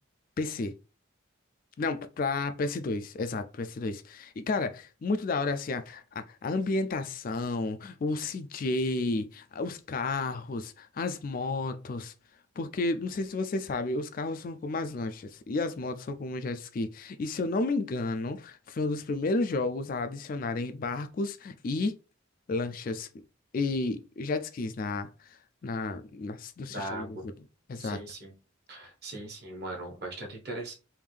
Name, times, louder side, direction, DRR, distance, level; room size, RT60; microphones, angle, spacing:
voice 1, 0.4-0.7 1.8-12.1 12.6-22.0 22.5-23.1 23.5-27.3 27.7-28.0, left 3 dB, 45° left, 0.3 m, -32 dB
voice 2, 26.7-27.3 27.8-28.3 28.7-30.7, right 2 dB, 50° right, 1.3 m, -39 dB
3.5 x 2.5 x 3.3 m
head